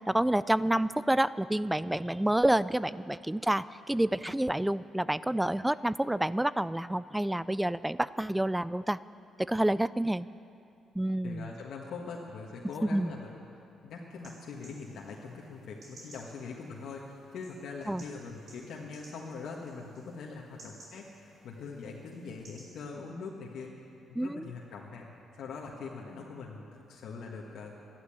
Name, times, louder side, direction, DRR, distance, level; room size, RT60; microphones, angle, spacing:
voice 1, 0.1-9.0 9.4-10.3 11.0-11.5 12.9-13.1 17.9-18.0 24.2-24.5, right 1 dB, 10° right, 17 dB, 0.4 m, -28 dB
voice 2, 11.2-13.5 13.8-23.8 24.1-25.1 25.4-27.9, left 4 dB, 70° left, -2 dB, 1.5 m, -42 dB
sound 1, 14.1-22.7, right 2 dB, 60° right, 4.9 m, -57 dB
12.5 x 11.5 x 8.9 m, 2.6 s
supercardioid pair, 60°, 0 cm